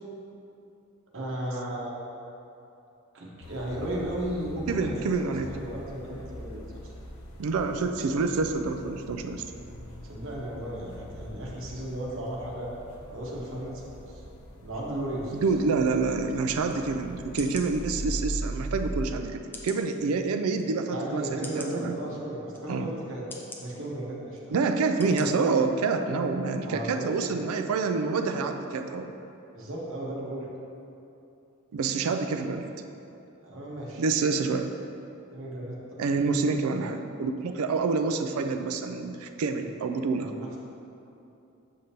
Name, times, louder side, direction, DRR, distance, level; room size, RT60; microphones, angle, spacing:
voice 1, 1.1-1.9 3.1-6.6 10.0-12.7 13.1-14.2 14.6-15.4 20.9-23.2 23.6-24.6 26.6-27.4 29.5-30.5 33.4-34.0 35.3-36.0 39.6-39.7 40.2-40.6, right 1 dB, 65° right, -4 dB, 1.2 m, -35 dB
sound 1, 3.4-19.1, equal, 90° left, 0.7 m, -40 dB
voice 2, 4.7-5.5 7.4-9.4 15.3-22.0 22.7-22.9 24.5-29.1 31.7-32.7 34.0-34.7 36.0-40.3, right 4 dB, 90° right, 6 dB, 0.4 m, -27 dB
sound 2, 16.7-16.8 17.4-17.7 18.4-18.5 19.5-19.8 20.5-20.6 21.4-21.7 22.5-22.6 23.3-23.6 24.3-24.5 25.0-25.2 25.7-25.8, left 2 dB, 10° left, 0.5 m, -42 dB
7.6 x 5.1 x 2.8 m, 2.8 s
head